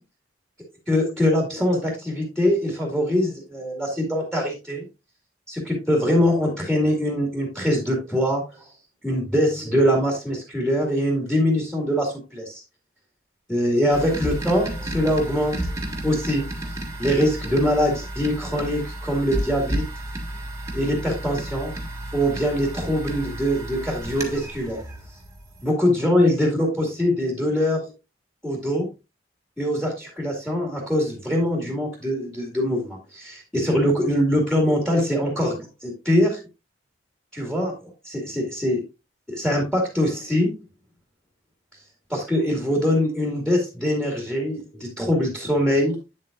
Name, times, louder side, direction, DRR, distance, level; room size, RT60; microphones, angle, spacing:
voice 1, 0.9-4.9 5.5-8.7 9.0-12.6 13.5-15.7 16.0-16.4 17.0-19.8 20.7-21.7 22.1-24.8 25.6-27.9 28.4-28.9 29.6-36.4 37.3-37.7 38.0-38.8 39.3-40.5 42.1-46.0, equal, 5° left, 1 dB, 2.1 m, -23 dB
sound 1, 13.9-25.7, right 1 dB, 15° right, 1.6 m, -32 dB
8.9 x 7.4 x 2.5 m, 0.25 s
head